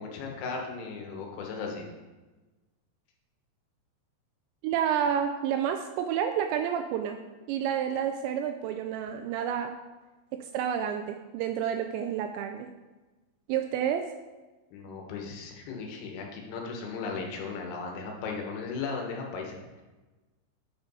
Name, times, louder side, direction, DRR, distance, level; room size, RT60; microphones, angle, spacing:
voice 1, 0.0-1.9 14.7-19.8, left 4 dB, 80° left, 1 dB, 3.5 m, -36 dB
voice 2, 4.6-7.2 7.5-9.7 10.3-12.7 13.5-14.1, right 9 dB, 85° right, 6 dB, 2.6 m, -29 dB
8.7 x 5.0 x 5.4 m, 1.2 s
omnidirectional pair, 5.5 m